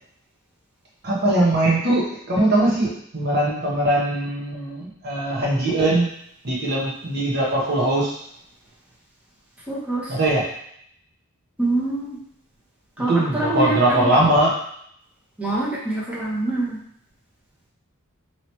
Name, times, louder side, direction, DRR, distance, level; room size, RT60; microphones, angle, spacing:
voice 1, 1.0-6.1 6.4-8.2 10.1-10.4 13.1-14.5, right 1 dB, 50° right, -4 dB, 0.9 m, -21 dB
voice 2, 9.7-10.2 11.6-12.2 13.0-14.2 15.4-16.8, right 2 dB, 5° right, -7 dB, 0.9 m, -25 dB
3.0 x 2.9 x 4.3 m, 0.70 s
head